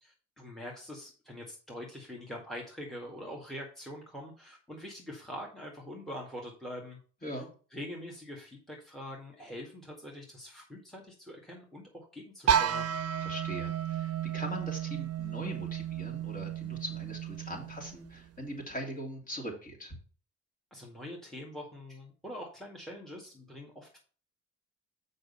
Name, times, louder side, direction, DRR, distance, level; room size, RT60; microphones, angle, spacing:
voice 1, 0.0-7.0 7.7-12.9 20.7-24.0, left 1 dB, ahead, -1 dB, 2.0 m, -44 dB
sound 1, 12.5-18.3, right 9 dB, 55° right, 0.7 m, -32 dB
voice 2, 13.2-20.0, equal, 25° left, 1 dB, 2.9 m, -41 dB
6.6 x 5.4 x 5.6 m, 0.39 s
cardioid pair, 90°, 30 cm